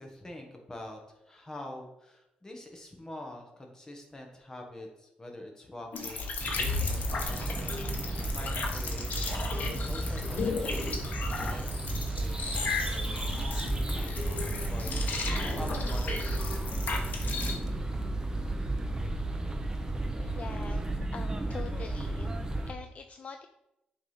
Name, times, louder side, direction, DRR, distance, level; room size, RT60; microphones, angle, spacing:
voice 1, 0.0-17.0, left 1 dB, 20° left, 1 dB, 1.6 m, -46 dB
sound 1, 5.9-17.5, left 4 dB, 65° left, 1.4 m, -35 dB
sound 2, 6.4-22.7, right 2 dB, 20° right, 0.9 m, -33 dB
voice 2, 20.2-20.8 21.1-23.5, left 5 dB, 45° left, 7 dB, 0.4 m, -44 dB
7.2 x 3.6 x 5.8 m, 0.89 s
cardioid pair, 100°, 3 cm